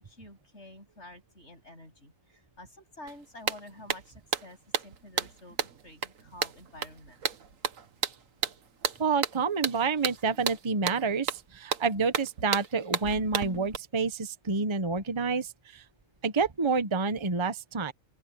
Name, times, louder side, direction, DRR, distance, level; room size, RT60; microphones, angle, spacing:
voice 1, 0.0-7.2 9.5-9.6 10.3-10.4, left 1 dB, 55° left, 8.5 m, -50 dB
sound 1, 3.1-3.2 3.5-13.8, right 7 dB, 75° right, 1.6 m, -33 dB
voice 2, 9.0-15.8 16.2-17.9, right 4 dB, 25° right, 0.9 m, -28 dB
open air
omnidirectional pair, 1.4 m